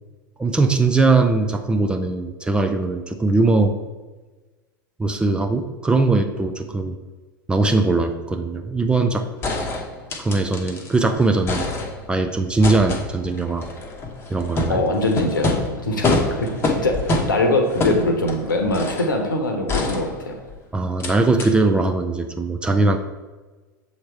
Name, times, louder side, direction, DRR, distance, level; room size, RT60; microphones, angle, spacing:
voice 1, 0.4-3.8 5.0-7.0 7.5-9.3 10.2-11.7 12.1-13.7 14.3-14.8 20.7-23.0, right 3 dB, 10° right, 4 dB, 0.4 m, -20 dB
sound 1, 9.0-9.1 9.4-11.0 11.3-12.2 12.6-19.2 19.7-20.5 21.0-21.1 21.4-21.5, left 2 dB, 20° left, 0.9 m, -26 dB
voice 2, 14.7-20.4, left 2 dB, 70° left, 4 dB, 1.0 m, -23 dB
7.0 x 3.2 x 4.5 m, 1.2 s
figure-of-eight pair, 90°, 11 cm